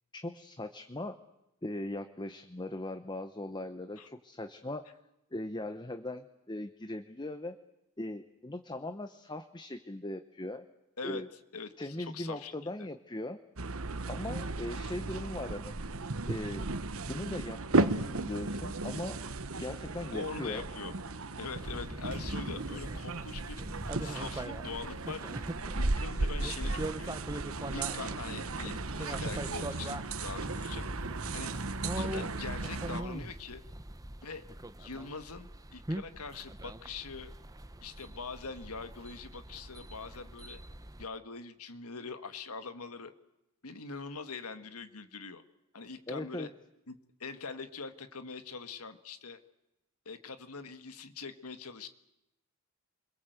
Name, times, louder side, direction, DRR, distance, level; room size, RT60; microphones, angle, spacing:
voice 1, 0.1-1.2 1.6-4.8 5.3-7.6 8.0-10.7 11.0-11.3 11.8-13.4 14.1-15.7 16.3-16.7 17.1-19.2 19.6-20.6 46.1-46.5, left 1 dB, 20° left, 9 dB, 0.9 m, -39 dB
voice 2, 11.5-12.7 20.1-21.0 21.4-23.6 24.0-25.2 25.8-27.2 27.7-30.9 31.3-31.5 32.0-33.6 34.2-34.4 34.8-37.3 37.8-40.6 41.0-43.1 43.6-45.4 45.7-46.5 46.9-49.4 50.1-51.9, left 4 dB, 85° left, 10 dB, 1.7 m, -43 dB
sound 1, 13.6-33.0, right 3 dB, 70° right, 1.2 m, -35 dB
sound 2, 21.5-41.1, right 1 dB, 15° right, 0.9 m, -42 dB
28.5 x 22.5 x 8.1 m, 0.91 s
head